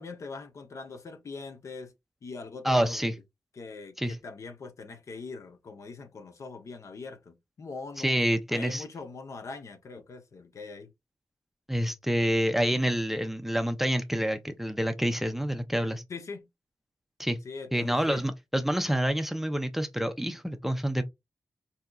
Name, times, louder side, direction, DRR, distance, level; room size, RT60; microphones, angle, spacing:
voice 1, 0.0-1.9 2.2-3.1 3.6-8.2 8.5-10.9 16.1-16.5 17.4-18.2, left 4 dB, 60° left, 0.6 m, -42 dB
voice 2, 2.6-3.1 4.0-4.2 8.0-8.8 11.7-16.0 17.2-17.4 17.7-21.0, equal, 5° right, 0.5 m, -27 dB
3.6 x 2.7 x 2.2 m
cardioid pair, 80°, 6 cm